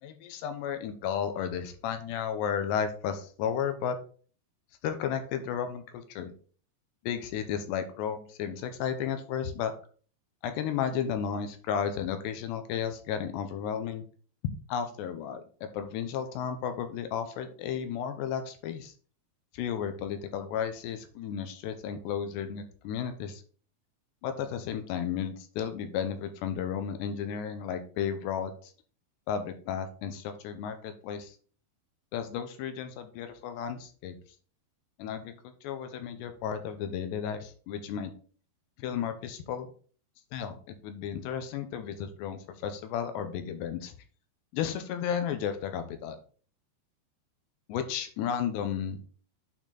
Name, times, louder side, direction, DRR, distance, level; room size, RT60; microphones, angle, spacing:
voice 1, 0.0-4.0 4.8-6.3 7.0-9.7 10.4-14.1 14.7-18.9 19.5-23.4 24.2-28.7 29.3-31.4 32.1-34.1 35.0-35.3 35.6-38.1 38.8-39.7 40.3-43.9 44.5-46.2 47.7-49.0, left 8 dB, 80° left, 8 dB, 2.9 m, -33 dB
9.0 x 4.4 x 3.9 m, 0.42 s
omnidirectional pair, 5.0 m